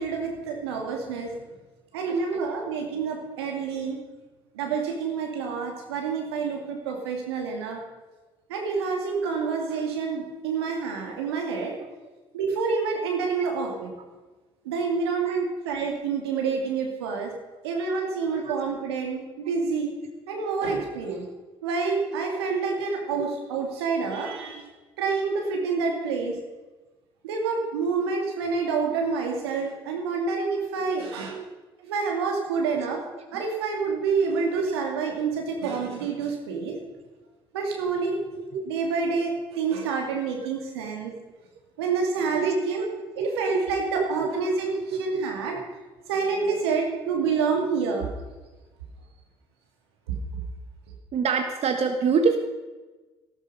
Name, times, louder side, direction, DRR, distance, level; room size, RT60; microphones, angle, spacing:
voice 1, 0.0-1.3 1.9-4.0 4.5-7.8 8.5-11.8 12.3-13.9 14.6-17.3 17.6-19.9 20.3-21.2 21.6-24.6 25.0-26.4 27.2-31.4 31.8-33.0 33.3-36.8 37.5-38.2 38.7-41.1 41.8-42.9 43.2-45.6 46.1-48.1, right 5 dB, 85° right, 1 dB, 2.5 m, -28 dB
voice 2, 38.3-38.6 42.3-42.5 43.2-43.3 44.0-44.3 44.9-45.2 45.5-45.6 51.1-52.4, right 5 dB, 55° right, 5 dB, 1.4 m, -27 dB
13.5 x 12.5 x 5.5 m, 1.2 s
hypercardioid pair, 55°, 13 cm